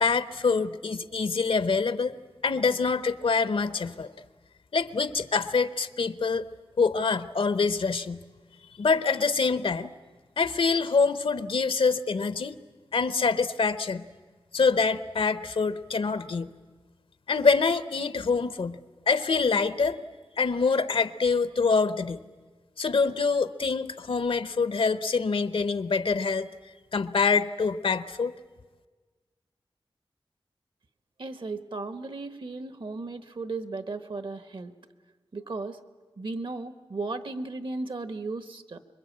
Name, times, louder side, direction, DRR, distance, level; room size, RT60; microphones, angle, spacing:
voice 1, 0.0-2.2 2.4-4.1 4.7-6.4 6.8-8.2 8.8-9.9 10.4-12.6 12.9-14.1 14.5-16.5 17.3-18.8 19.1-20.0 20.4-22.2 22.8-26.5 26.9-28.3, left 4 dB, 70° left, 14 dB, 0.8 m, -25 dB
voice 2, 31.2-34.7 35.3-35.8 36.2-38.8, right 3 dB, 65° right, 11 dB, 1.2 m, -35 dB
25.5 x 22.0 x 8.7 m, 1.4 s
wide cardioid pair, 100°, 9 cm